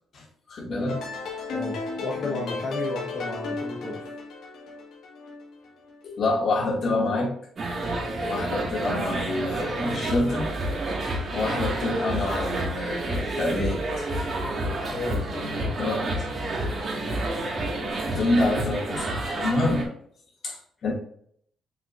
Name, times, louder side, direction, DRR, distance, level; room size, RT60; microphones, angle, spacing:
voice 1, 0.1-1.0 6.0-7.3 7.9-10.5 11.3-14.0 15.8-16.3 18.1-19.9 20.4-20.6 20.8-20.9, left 2 dB, 60° left, -2 dB, 2.4 m, -27 dB
sound 1, 0.9-6.0, left 3 dB, 75° left, 1.9 m, -34 dB
voice 2, 1.5-4.1 14.9-15.8 17.0-17.2, left 2 dB, 35° left, -4 dB, 1.4 m, -33 dB
sound 2, 7.6-19.8, right 1 dB, 50° right, 2.0 m, -29 dB
6.8 x 5.6 x 2.6 m, 0.64 s
cardioid pair, 90°, 0 cm